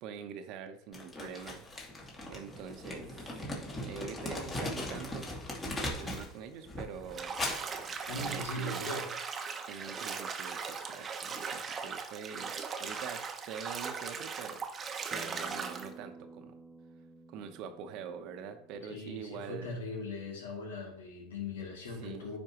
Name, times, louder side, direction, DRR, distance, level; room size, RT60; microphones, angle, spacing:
voice 1, 0.0-1.7 2.3-3.5 3.8-5.3 5.8-7.4 8.1-9.0 9.7-14.6 15.1-16.6 17.3-19.7 22.0-22.4, right 7 dB, 60° right, 8 dB, 0.9 m, -45 dB
Crumpling crinkling, 0.9-6.3 6.6-8.6, left 1 dB, 25° left, 2.4 m, -39 dB
Bathtub (filling or washing), 7.1-15.9, right 5 dB, 30° right, 0.9 m, -39 dB
voice 2, 8.1-9.1 18.9-22.4, left 2 dB, 85° left, -2 dB, 2.4 m, -40 dB
Acoustic guitar, 15.1-20.3, right 2 dB, 5° right, 0.9 m, -53 dB
9.6 x 4.4 x 3.0 m, 0.77 s
hypercardioid pair, 90°, 0 cm